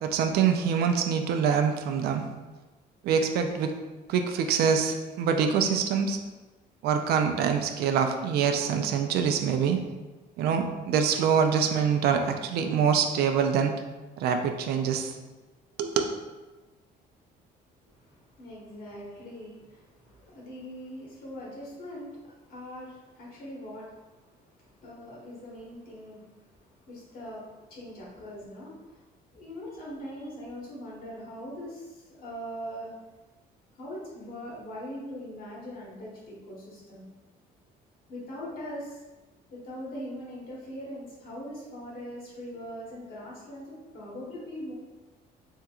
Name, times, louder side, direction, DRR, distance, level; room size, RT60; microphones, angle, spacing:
voice 1, 0.0-2.2 3.0-3.7 4.1-6.2 6.8-9.8 10.4-13.7 14.2-15.2 15.8-16.0, right 7 dB, 70° right, 6 dB, 0.4 m, -25 dB
voice 2, 17.8-29.0 29.3-32.9 33.7-37.1 38.1-39.0 39.5-44.7, equal, 60° left, -5 dB, 1.2 m, -41 dB
3.5 x 2.9 x 2.3 m, 1.2 s
cardioid pair, 110°, 17 cm